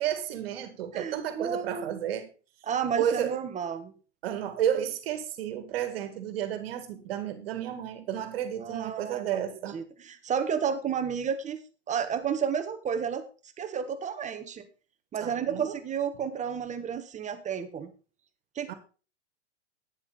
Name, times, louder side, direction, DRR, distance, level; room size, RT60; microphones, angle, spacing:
voice 1, 0.0-2.3 3.0-3.4 4.2-9.8 15.2-15.7 18.7-18.8, right 10 dB, 55° right, 1.9 m, -32 dB
voice 2, 0.9-2.0 2.7-3.9 8.6-9.4 9.7-11.6 11.9-13.2 13.6-14.6 15.1-17.9 18.5-18.7, right 7 dB, 20° right, 1.3 m, -31 dB
11.5 x 9.7 x 3.9 m
hypercardioid pair, 105°, 35 cm